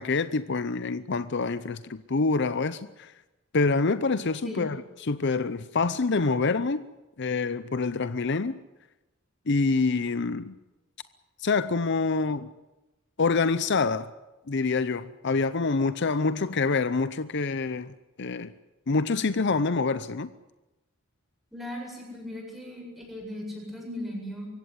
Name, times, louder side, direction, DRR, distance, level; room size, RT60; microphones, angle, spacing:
voice 1, 0.0-3.1 3.5-6.8 7.2-8.6 9.5-10.5 11.4-12.5 13.2-14.1 14.5-17.9 18.2-18.5 18.9-20.3, left 4 dB, 55° left, 0.7 m, -26 dB
voice 2, 21.5-24.5, left 1 dB, ahead, 7.9 m, -37 dB
23.5 x 16.5 x 9.7 m
head